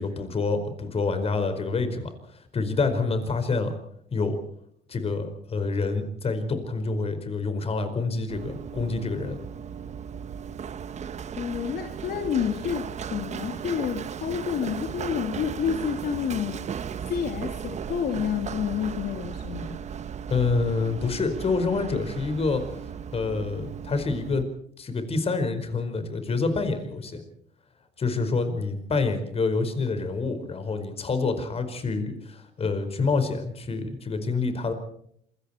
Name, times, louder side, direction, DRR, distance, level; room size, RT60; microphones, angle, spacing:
voice 1, 0.0-3.7 4.1-4.4 4.9-9.4 20.3-22.6 23.1-24.5 24.8-27.2 28.0-34.7, left 4 dB, 35° left, 9 dB, 4.8 m, -27 dB
Run, 8.3-24.4, right 7 dB, 40° right, 1.2 m, -36 dB
voice 2, 11.3-16.6 17.1-19.8, left 8 dB, 65° left, 4 dB, 2.6 m, -29 dB
27.5 x 22.5 x 4.4 m, 0.68 s
cardioid pair, 110°, 17 cm